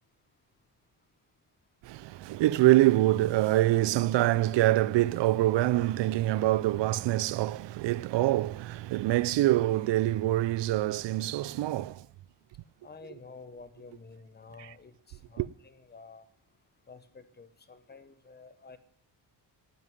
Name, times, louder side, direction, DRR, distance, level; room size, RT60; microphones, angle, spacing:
voice 1, 1.8-12.0 15.4-15.5, right 16 dB, 85° right, 0.5 m, -25 dB
voice 2, 12.8-16.3 16.9-18.8, left 4 dB, 25° left, 0.9 m, -50 dB
11.5 x 9.5 x 9.9 m
wide cardioid pair, 175°, 42 cm